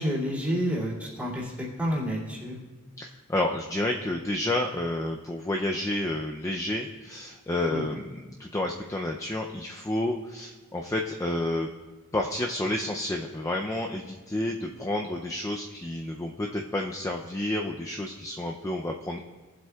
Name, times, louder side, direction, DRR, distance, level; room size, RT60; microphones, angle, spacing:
voice 1, 0.0-1.5 1.8-2.6 7.7-7.8, equal, 5° right, -6 dB, 2.5 m, -29 dB
voice 2, 3.0-11.7 12.1-19.2, left 1 dB, 15° left, 1 dB, 0.4 m, -30 dB
18.5 x 7.7 x 2.3 m, 1.3 s
head